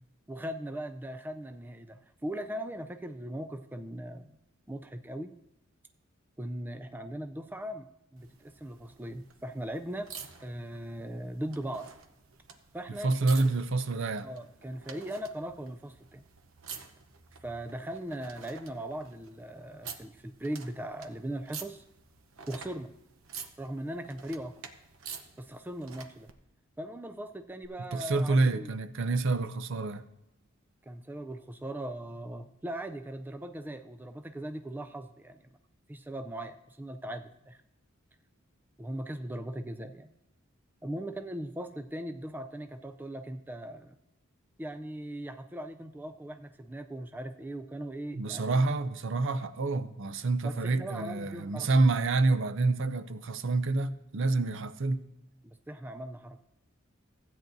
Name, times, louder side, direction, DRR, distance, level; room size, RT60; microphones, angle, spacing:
voice 1, 0.3-4.4 4.7-5.3 6.4-7.9 8.1-10.1 10.4-11.9 12.7-13.5 14.2-16.2 17.4-21.8 22.5-22.9 23.6-24.6 25.4-26.3 26.8-28.7 30.8-35.5 35.9-37.6 38.8-40.1 40.8-43.9 44.6-48.7 50.4-51.7 55.4-56.4, right 1 dB, 10° right, 0.3 m, -39 dB
sound 1, 8.2-26.3 27.6-27.7, right 6 dB, 90° right, 0.8 m, -49 dB
voice 2, 13.0-14.3 27.9-30.0 48.1-55.1, right 3 dB, 65° right, 0.5 m, -28 dB
15.5 x 8.9 x 2.6 m
head